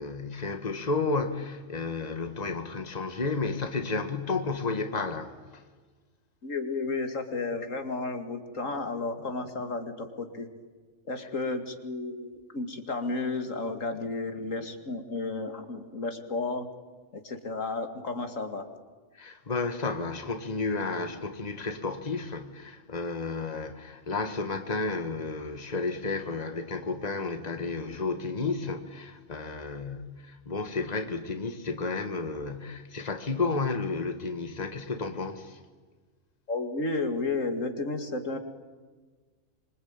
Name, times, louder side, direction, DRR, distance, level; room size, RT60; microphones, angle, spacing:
voice 1, 0.0-5.6 19.1-35.6, left 3 dB, 30° left, 1.9 m, -32 dB
voice 2, 6.4-10.5 11.1-16.7 17.1-18.6 36.5-38.4, left 3 dB, 80° left, 2.6 m, -32 dB
26.0 x 25.0 x 8.9 m
omnidirectional pair, 1.3 m